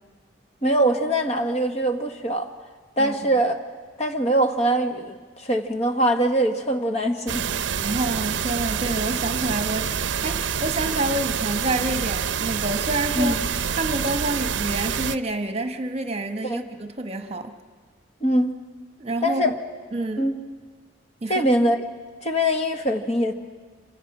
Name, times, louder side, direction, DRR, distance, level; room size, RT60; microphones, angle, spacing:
voice 1, 0.6-2.5 3.0-3.6 4.0-7.4 13.2-13.4 16.4-16.6 18.2-18.5 19.2-19.5 20.2-20.3 21.3-21.8 22.2-23.3, right 1 dB, 35° left, 5 dB, 1.4 m, -22 dB
voice 2, 3.0-3.3 7.8-13.4 13.7-17.5 19.0-19.5 19.9-20.3 21.2-21.5, right 2 dB, 35° right, 7 dB, 1.3 m, -28 dB
sound 1, 7.3-15.2, right 7 dB, 75° right, 0.6 m, -27 dB
27.5 x 25.5 x 6.1 m, 1.5 s
head